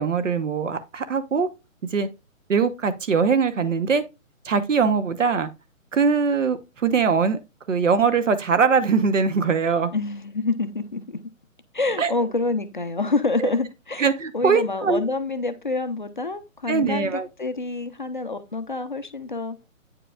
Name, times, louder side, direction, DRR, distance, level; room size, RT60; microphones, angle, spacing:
voice 1, 0.0-1.5 1.9-2.1 2.5-4.0 4.4-5.5 5.9-7.4 7.7-9.9 12.0-12.1 13.4-13.5 14.0-15.0 16.7-17.3, right 5 dB, 65° right, 1.0 m, -21 dB
voice 2, 9.9-11.2 11.7-14.1 14.3-19.6, left 3 dB, 40° left, 0.5 m, -27 dB
8.9 x 4.8 x 2.3 m
hypercardioid pair, 170°, 41 cm